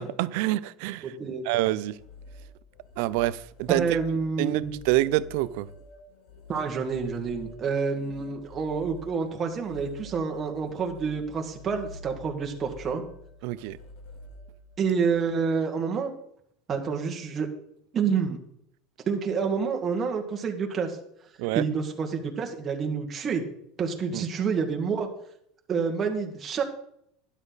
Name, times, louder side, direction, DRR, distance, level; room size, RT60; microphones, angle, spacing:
voice 1, 0.0-1.1 1.5-1.9 3.0-4.0 4.4-5.7 13.4-13.8 21.4-21.6 24.1-24.2, right 17 dB, 70° right, 0.5 m, -26 dB
voice 2, 1.0-1.4 3.7-4.7 6.5-13.0 14.8-16.1 16.7-17.5 17.9-18.4 19.1-21.0 21.5-23.4 23.8-25.1 25.7-26.6, right 5 dB, 25° right, 1.8 m, -28 dB
sound 1, 1.9-15.2, left 2 dB, 65° left, 3.2 m, -47 dB
12.5 x 10.0 x 4.1 m
supercardioid pair, 135°, 0 cm